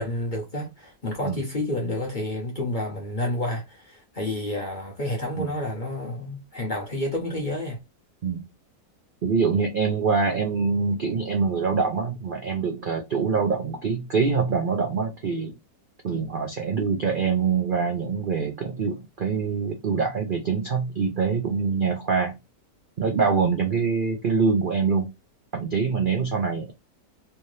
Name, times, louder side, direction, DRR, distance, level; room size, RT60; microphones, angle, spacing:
voice 1, 0.0-7.8, left 1 dB, 40° left, 0.7 m, -30 dB
voice 2, 9.2-15.5 16.0-22.4 23.0-25.1 25.5-26.7, right 5 dB, 65° right, 0.5 m, -24 dB
3.4 x 2.7 x 3.2 m
omnidirectional pair, 1.8 m